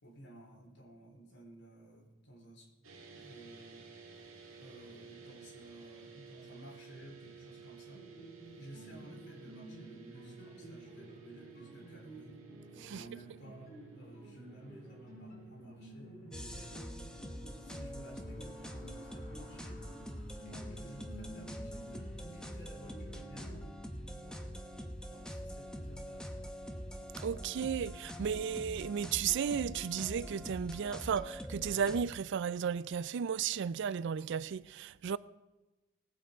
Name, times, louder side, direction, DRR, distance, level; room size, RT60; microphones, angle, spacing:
voice 1, 0.0-2.7 3.1-3.9 4.6-8.0 8.6-12.4 12.9-17.0 17.6-24.6 25.1-26.5, right 1 dB, 60° left, 3.6 m, -55 dB
sound 1, 2.8-17.2, right 5 dB, 75° right, 2.0 m, -54 dB
sound 2, 7.9-23.7, right 1 dB, 40° left, 5.2 m, -53 dB
sound 3, 16.3-32.0, equal, 5° left, 1.0 m, -44 dB
voice 2, 27.2-35.2, right 7 dB, 60° right, 0.3 m, -34 dB
19.0 x 7.8 x 5.0 m
head